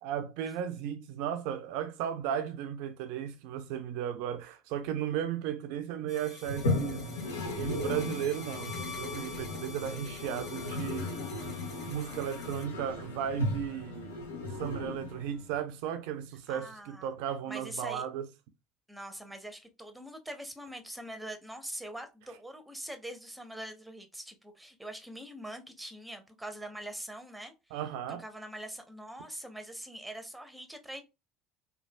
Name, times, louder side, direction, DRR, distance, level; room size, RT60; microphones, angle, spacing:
voice 1, 0.0-7.1 7.6-11.2 11.9-14.2 14.4-18.3 27.7-28.2, right 9 dB, 65° right, 0.4 m, -35 dB
sound 1, 6.1-12.6, left 4 dB, 45° left, 1.6 m, -47 dB
Toilet flush, 6.4-15.5, left 2 dB, 80° left, 0.5 m, -36 dB
voice 2, 16.5-17.1 17.5-18.0 18.9-27.8 28.2-31.0, right 1 dB, 5° right, 0.7 m, -43 dB
3.2 x 2.2 x 2.2 m
figure-of-eight pair, 60°, 0 cm